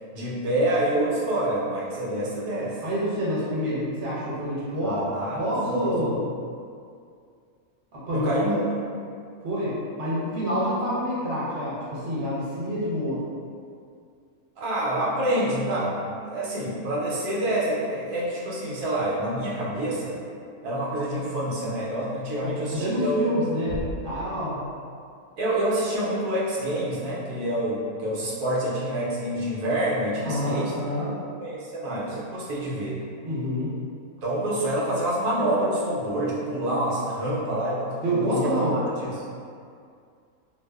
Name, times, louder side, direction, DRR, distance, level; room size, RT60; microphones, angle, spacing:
voice 1, 0.1-2.8 4.8-5.4 5.7-6.3 8.1-8.6 14.6-20.2 20.6-23.2 25.4-30.7 31.4-33.0 34.2-39.1, right 1 dB, 85° right, -6 dB, 1.1 m, -27 dB
voice 2, 2.8-5.0 5.3-6.2 7.9-8.4 9.4-13.2 22.3-24.6 30.2-31.2 33.2-33.7 38.0-38.8, equal, 50° right, -8 dB, 0.8 m, -27 dB
sound 1, 23.7-25.3, right 1 dB, 65° left, 0.8 m, -38 dB
2.6 x 2.3 x 2.2 m, 2.3 s
omnidirectional pair, 1.6 m